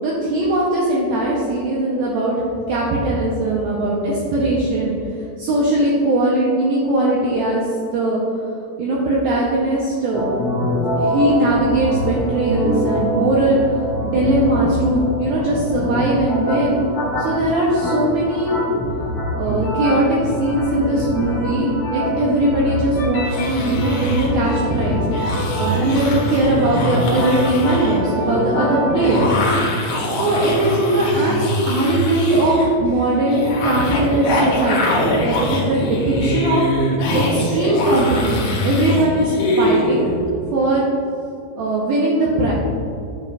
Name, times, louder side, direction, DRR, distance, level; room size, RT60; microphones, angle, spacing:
voice 1, 0.0-2.4 2.7-4.9 5.4-7.7 7.9-8.2 8.8-10.3 11.0-16.9 17.2-18.6 19.4-29.3 30.1-36.6 37.1-40.1 40.5-40.9 41.6-42.5, right 1 dB, 80° right, -5 dB, 2.2 m, -20 dB
sound 1, 10.1-29.2, left 1 dB, 60° left, 2.0 m, -24 dB
sound 2, 23.2-40.2, left 1 dB, 85° left, 1.6 m, -23 dB
11.0 x 7.1 x 2.5 m, 2.6 s
omnidirectional pair, 5.4 m